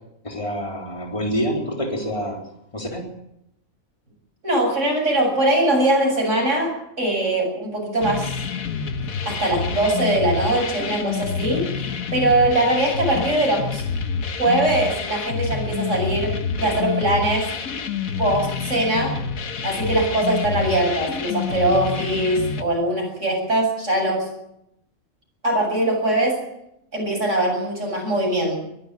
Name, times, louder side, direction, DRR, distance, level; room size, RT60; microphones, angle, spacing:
voice 1, 0.2-2.4 2.7-3.0, equal, 20° left, 1 dB, 3.7 m, -26 dB
voice 2, 4.4-8.3 9.2-13.8 14.4-17.5 18.2-19.2 19.6-24.3 25.4-26.4 26.9-28.6, right 1 dB, 60° right, 0 dB, 8.0 m, -21 dB
sound 1, 8.0-22.6, left 6 dB, 90° left, 1.6 m, -27 dB
23.0 x 12.0 x 9.8 m, 0.83 s
omnidirectional pair, 1.4 m